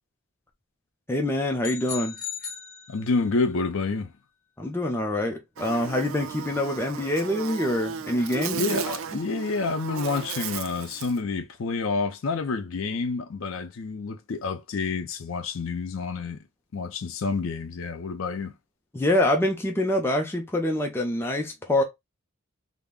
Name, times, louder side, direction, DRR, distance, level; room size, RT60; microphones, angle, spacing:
voice 1, 1.1-2.2 4.6-9.2 18.9-21.8, left 1 dB, 10° left, 0.4 m, -26 dB
sound 1, 1.6-3.4, left 7 dB, 35° left, 0.7 m, -37 dB
voice 2, 2.9-4.1 8.5-16.4 16.7-18.5, left 4 dB, 70° left, 0.5 m, -28 dB
Buzz, 5.6-11.2, right 7 dB, 75° right, 0.3 m, -35 dB
2.3 x 2.0 x 3.5 m
head